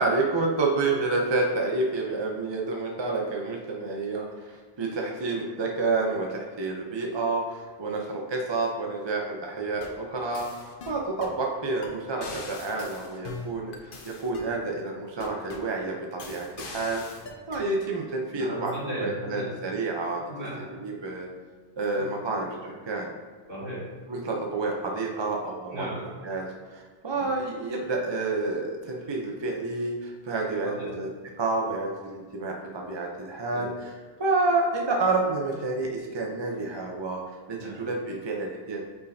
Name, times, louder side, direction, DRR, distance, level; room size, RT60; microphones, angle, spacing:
voice 1, 0.0-17.0 17.5-18.7 19.0-20.2 20.6-21.3 21.8-22.5 22.9-23.1 24.1-25.9 26.2-26.4 26.7-31.1 31.4-33.7 34.2-38.8, right 3 dB, 30° right, 0 dB, 0.5 m, -29 dB
sound 1, 9.6-10.0 10.3-11.4 11.8-11.9 12.2-14.5 15.2-15.7 16.2-17.7, left 4 dB, 60° left, 0.9 m, -41 dB
voice 2, 18.3-19.6 20.2-20.6 21.9-22.0 22.4-22.8 23.5-23.9 25.7-26.0 27.1-27.3 30.6-31.0 33.5-33.7 37.5-37.8, equal, 55° right, -7 dB, 2.2 m, -36 dB
8.4 x 4.6 x 2.7 m, 1.4 s
omnidirectional pair, 1.1 m